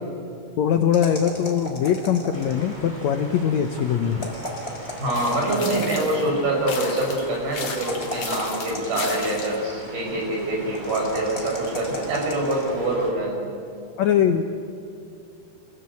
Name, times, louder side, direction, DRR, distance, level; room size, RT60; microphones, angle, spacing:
voice 1, 0.6-4.3 14.0-14.4, left 8 dB, 75° left, 6 dB, 1.7 m, -21 dB
sound 1, 0.9-2.7 4.1-6.0 7.6-9.4 10.7-12.7, equal, 15° left, 3.7 m, -35 dB
sound 2, 2.3-13.1, equal, 10° right, 4.8 m, -41 dB
voice 2, 5.0-13.5, right 1 dB, 80° right, -1 dB, 7.3 m, -25 dB
sound 3, 5.1-6.3 6.7-9.7, left 5 dB, 45° left, 3.1 m, -34 dB
27.5 x 16.5 x 8.4 m, 2.5 s
omnidirectional pair, 4.2 m